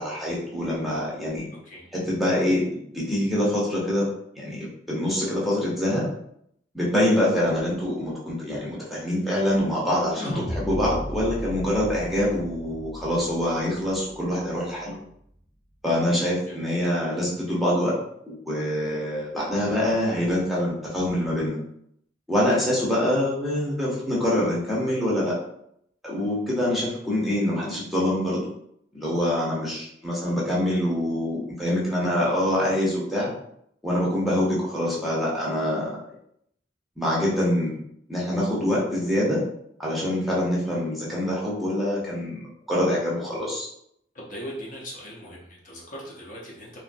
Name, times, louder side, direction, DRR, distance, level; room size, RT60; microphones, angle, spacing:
voice 1, 0.0-1.5 1.9-4.1 4.4-6.0 6.7-15.0 15.8-17.9 18.3-21.6 22.3-25.3 26.0-28.4 28.9-33.3 33.8-35.9 37.0-37.8 38.1-39.4 39.8-42.4 42.7-43.7, left 1 dB, ahead, -6 dB, 0.7 m, -25 dB
sound 1, 10.2-14.5, equal, 85° left, 0.9 m, -35 dB
voice 2, 44.1-46.8, equal, 45° left, -3 dB, 0.7 m, -39 dB
2.8 x 2.5 x 2.5 m, 0.72 s
head